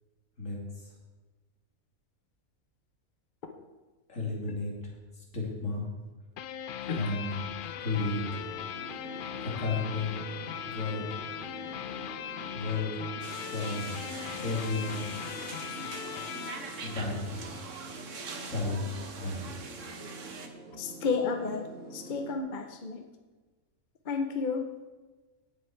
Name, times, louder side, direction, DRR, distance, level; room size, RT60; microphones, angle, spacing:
voice 1, 0.4-0.9 4.1-4.7 5.2-5.9 6.9-7.3 7.8-8.2 9.4-10.2 10.6-11.0 12.5-13.0 13.5-13.9 14.4-15.1 16.8-17.5 18.5-18.9 19.2-19.5, left 3 dB, 60° left, -3 dB, 3.2 m, -33 dB
sound 1, 6.4-17.6, left 9 dB, 85° left, 0.4 m, -39 dB
sound 2, 8.0-22.4, right 2 dB, 85° right, 1.7 m, -46 dB
sound 3, 13.2-20.5, right 4 dB, 60° right, 1.5 m, -43 dB
voice 2, 20.8-23.0 24.0-24.7, left 4 dB, 40° left, 6 dB, 0.8 m, -32 dB
17.5 x 7.2 x 4.6 m, 1.3 s
omnidirectional pair, 1.5 m